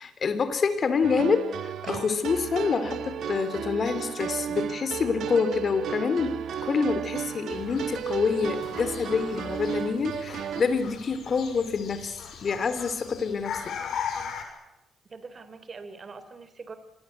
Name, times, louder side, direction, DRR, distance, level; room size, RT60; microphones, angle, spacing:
voice 1, 0.0-13.8, left 5 dB, 45° left, 11 dB, 3.4 m, -27 dB
sound 1, 1.0-10.6, right 8 dB, 70° right, 1.9 m, -34 dB
sound 2, 7.5-14.4, left 7 dB, 70° left, 6.5 m, -39 dB
voice 2, 15.1-16.8, right 4 dB, 35° right, 12 dB, 3.4 m, -43 dB
26.5 x 21.0 x 8.2 m, 0.95 s
cardioid pair, 90°, 0 cm